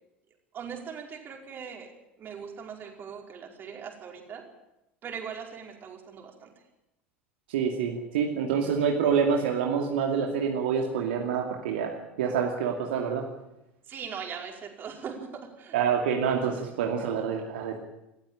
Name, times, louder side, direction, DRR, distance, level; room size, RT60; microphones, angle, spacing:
voice 1, 0.5-1.9 2.2-4.4 5.0-6.5 13.8-15.8, right 7 dB, 35° right, 2 dB, 5.0 m, -40 dB
voice 2, 7.5-13.2 15.7-17.9, right 7 dB, 60° right, 1 dB, 2.5 m, -27 dB
27.0 x 14.5 x 9.0 m, 0.91 s
figure-of-eight pair, 75°, 6 cm